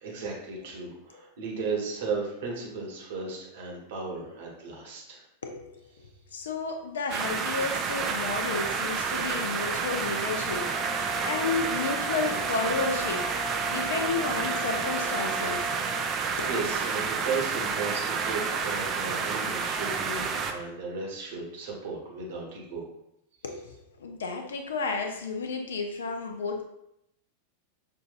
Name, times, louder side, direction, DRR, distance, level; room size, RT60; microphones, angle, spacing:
voice 1, 0.0-5.2 15.9-22.9, right 4 dB, 55° right, -2 dB, 1.1 m, -35 dB
voice 2, 5.4-15.7 16.4-16.6 23.4-26.6, left 4 dB, 65° left, 4 dB, 0.5 m, -32 dB
sound 1, 7.1-20.5, right 5 dB, 30° right, 0.4 m, -30 dB
Brass instrument, 10.3-16.2, equal, 5° right, 0.8 m, -37 dB
5.6 x 2.6 x 2.5 m, 0.81 s
figure-of-eight pair, 90°, 0 cm